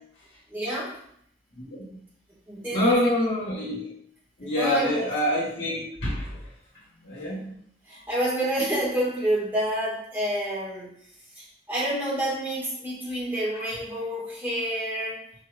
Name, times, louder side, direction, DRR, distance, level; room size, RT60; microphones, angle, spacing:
voice 1, 0.5-1.0 2.5-3.1 4.4-5.1 6.9-7.1 7.8-10.9 11.3-15.2, right 1 dB, 10° right, -6 dB, 1.5 m, -28 dB
voice 2, 1.5-2.0 2.7-3.9 4.4-6.4 7.0-7.5 13.5-13.6, left 1 dB, 75° left, -5 dB, 1.2 m, -26 dB
4.9 x 4.4 x 2.3 m, 0.67 s
head